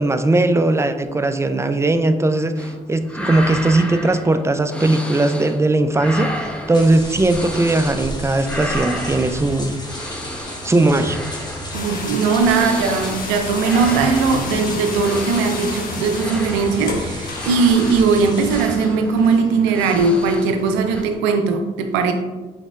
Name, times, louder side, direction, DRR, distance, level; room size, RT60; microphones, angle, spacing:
voice 1, 0.0-9.7 10.6-11.2, right 2 dB, 15° right, 9 dB, 0.5 m, -18 dB
sound 1, 2.6-2.8 3.0-5.6 5.9-8.1 8.4-20.6 20.9-21.0, equal, 5° left, 0.8 m, -32 dB
sound 2, 6.7-18.7, left 1 dB, 20° left, 1.2 m, -33 dB
sound 3, 11.7-21.2, left 3 dB, 50° left, 0.8 m, -33 dB
voice 2, 11.7-22.1, right 4 dB, 90° right, 6 dB, 0.5 m, -19 dB
5.3 x 4.0 x 2.4 m, 1.2 s
hypercardioid pair, 50°, 18 cm